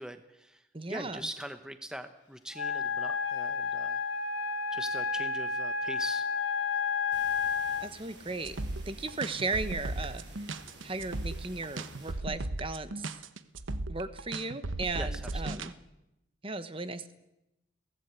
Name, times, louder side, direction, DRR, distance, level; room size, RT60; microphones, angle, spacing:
voice 1, 0.0-0.6 0.9-4.0 4.7-6.3 15.0-15.7, right 1 dB, 5° right, 9 dB, 0.9 m, -42 dB
voice 2, 0.7-1.2 7.8-8.6 8.9-10.2 10.8-13.2 13.9-15.7 16.4-17.1, right 3 dB, 30° right, 12 dB, 1.1 m, -36 dB
Wind instrument woodwind instrument, 2.5-7.9, left 5 dB, 75° left, 1.6 m, -31 dB
sound 1, 7.1-12.1, right 2 dB, 70° right, 7.1 m, -52 dB
sound 2, 8.4-15.7, right 2 dB, 85° right, 1.1 m, -36 dB
23.0 x 17.5 x 8.2 m, 0.91 s
head